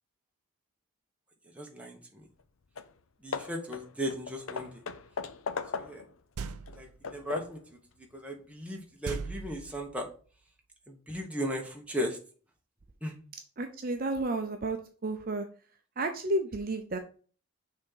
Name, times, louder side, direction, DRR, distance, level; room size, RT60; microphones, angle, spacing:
voice 1, 1.5-2.2 3.2-4.8 5.7-6.0 6.7-7.6 8.1-10.1 10.9-12.2 13.0-13.1, equal, 5° right, 1 dB, 1.1 m, -36 dB
Hammer / Wood, 2.4-2.5 2.8-3.0 3.3-6.2 6.7-7.7, left 5 dB, 65° left, 0.6 m, -39 dB
sound 1, 6.4-7.0 9.0-10.1, right 4 dB, 85° right, 0.6 m, -39 dB
voice 2, 13.6-15.5 16.0-17.0, right 2 dB, 40° right, 6 dB, 0.6 m, -32 dB
6.3 x 3.7 x 5.7 m, 0.40 s
head